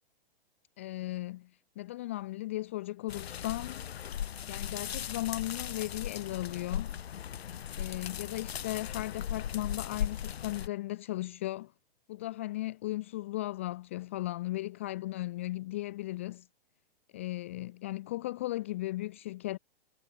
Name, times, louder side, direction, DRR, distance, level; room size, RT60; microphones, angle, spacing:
voice 1, 0.8-1.5 1.8-3.8 4.4-7.0 7.8-11.7 12.1-16.5 17.1-19.6, left 17 dB, 15° left, 0.4 m, -36 dB
sound 1, 3.1-10.7, left 9 dB, 80° left, 1.5 m, -38 dB
hypercardioid pair, 170°, 31 cm